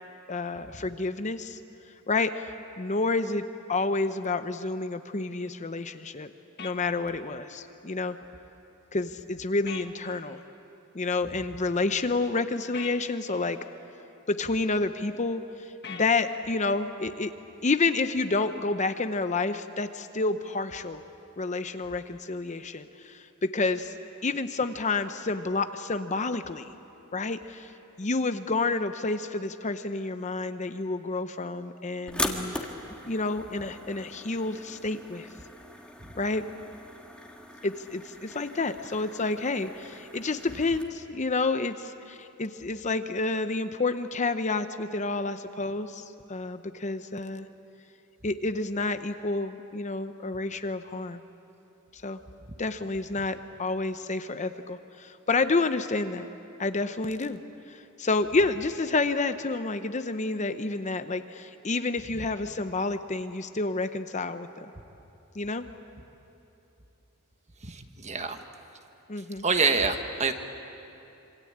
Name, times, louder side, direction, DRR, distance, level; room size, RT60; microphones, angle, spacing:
voice 1, 0.3-1.6 2.1-6.3 6.6-8.2 8.9-10.4 10.9-13.6 14.3-17.3 17.6-21.0 21.4-23.9 24.2-26.7 27.1-27.7 28.0-32.6 33.1-35.3 36.1-36.5 37.6-47.5 48.2-51.2 51.9-52.2 52.6-56.3 56.6-57.4 57.7-64.5 65.3-65.6 69.1-69.4, left 3 dB, 35° left, 9 dB, 0.8 m, -29 dB
sound 1, 6.6-6.8 9.7-9.9 12.7-13.0 15.8-16.1, left 7 dB, 50° left, 1.6 m, -40 dB
sound 2, 32.1-40.8, left 1 dB, 5° left, 1.7 m, -39 dB
voice 2, 67.6-68.4 69.4-70.3, right 4 dB, 30° right, 7 dB, 1.4 m, -26 dB
26.5 x 25.5 x 8.7 m, 2.9 s
head